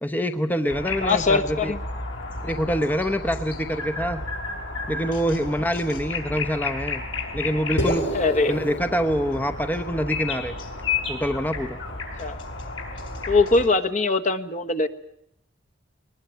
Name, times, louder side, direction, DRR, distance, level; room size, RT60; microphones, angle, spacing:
voice 1, 0.0-1.7 2.4-4.2 4.9-7.0 7.3-8.0 8.5-10.6 11.1-11.8, equal, 10° left, 8 dB, 0.9 m, -25 dB
sound 1, 0.7-13.7, left 4 dB, 75° left, 5.8 m, -32 dB
voice 2, 1.0-1.8 8.1-8.6 12.2-12.4 13.3-14.9, left 3 dB, 40° left, 8 dB, 1.3 m, -21 dB
sound 2, 7.8-12.2, equal, 60° left, 3.7 m, -32 dB
22.0 x 20.0 x 9.1 m, 0.76 s
head